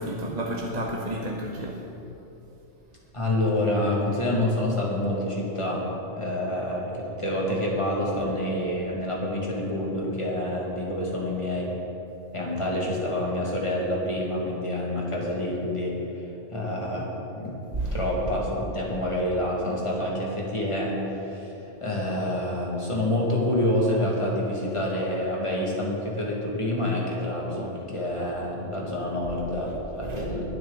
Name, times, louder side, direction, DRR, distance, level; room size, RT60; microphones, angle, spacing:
voice 1, 0.0-1.8 17.8-18.2 30.0-30.4, right 1 dB, 35° right, -1 dB, 1.1 m, -31 dB
voice 2, 3.1-11.7 12.3-16.0 16.5-17.6 17.9-21.5 21.8-30.4, left 1 dB, 25° left, -3 dB, 2.2 m, -27 dB
21.0 x 8.1 x 4.0 m, 2.9 s
omnidirectional pair, 1.2 m